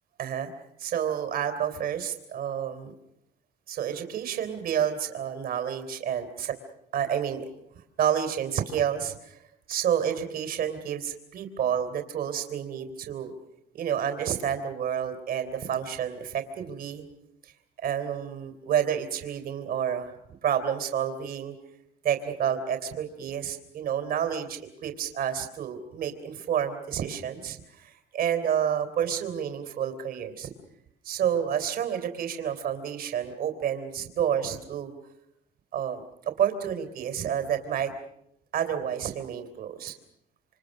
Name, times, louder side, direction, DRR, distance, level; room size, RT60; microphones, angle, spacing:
voice 1, 0.2-0.5 0.8-2.9 3.7-6.6 6.9-7.5 8.0-9.4 9.7-13.3 13.7-17.0 17.4-17.5 17.8-20.1 20.4-21.5 22.0-30.5 31.0-34.9 35.7-37.9 38.5-39.9, right 9 dB, 60° right, 8 dB, 3.5 m, -29 dB
28.0 x 26.0 x 6.6 m, 0.78 s
cardioid pair, 110°, 17 cm